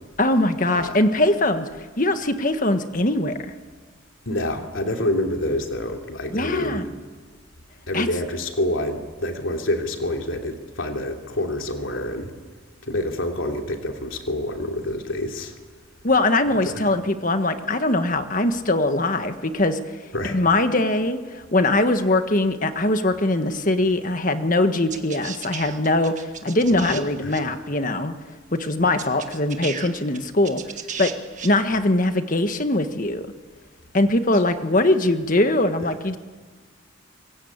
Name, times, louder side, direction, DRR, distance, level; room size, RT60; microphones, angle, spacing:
voice 1, 0.2-1.7 2.0-3.3 6.3-6.9 7.9-8.1 16.0-20.0 20.3-28.1 28.5-30.6 31.0-31.1 31.4-33.2 33.9-36.2, left 2 dB, 40° left, 8 dB, 1.5 m, -21 dB
voice 2, 4.2-6.9 7.9-12.3 12.8-15.5 16.6-16.8 20.1-20.4 26.7-26.9 27.2-27.4 34.3-34.4, left 1 dB, 75° left, 3 dB, 3.2 m, -27 dB
sound 1, 24.9-27.0 27.3-27.4 28.6-28.7 29.0-31.5, right 7 dB, 40° right, 1.7 m, -34 dB
25.0 x 21.0 x 8.8 m, 1.4 s
head